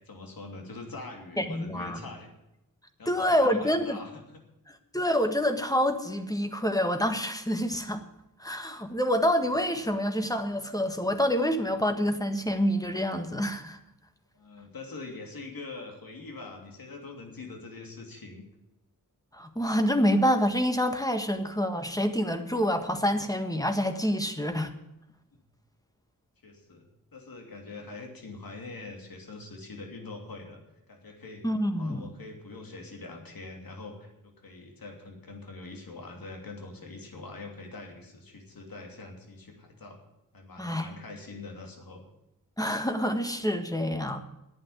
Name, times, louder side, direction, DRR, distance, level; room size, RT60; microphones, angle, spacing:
voice 1, 0.0-2.3 3.0-4.1 14.3-18.4 25.3-25.4 26.4-26.8 27.1-30.6 30.9-31.4 31.7-40.0 40.3-42.0, left 3 dB, 80° left, 2 dB, 3.0 m, -43 dB
voice 2, 1.4-2.1 3.1-4.0 4.9-8.0 8.4-13.8 19.3-24.7 31.4-32.1 40.6-40.9 42.6-44.2, equal, 10° left, 7 dB, 1.6 m, -27 dB
11.5 x 8.8 x 9.5 m, 0.89 s
wide cardioid pair, 75°, 34 cm